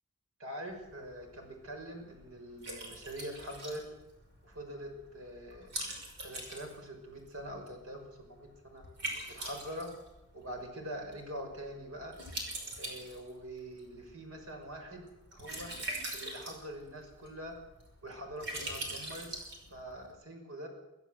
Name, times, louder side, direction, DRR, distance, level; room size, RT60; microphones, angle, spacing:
voice 1, 0.4-3.8 4.4-5.7 6.2-8.8 9.3-9.9 10.3-12.2 12.8-15.7 16.1-17.5 18.0-19.3 19.7-20.7, equal, 85° right, 3 dB, 6.0 m, -44 dB
Liquid, 0.7-20.1, right 1 dB, 55° right, 5.7 m, -44 dB
23.5 x 14.5 x 7.9 m, 0.93 s
head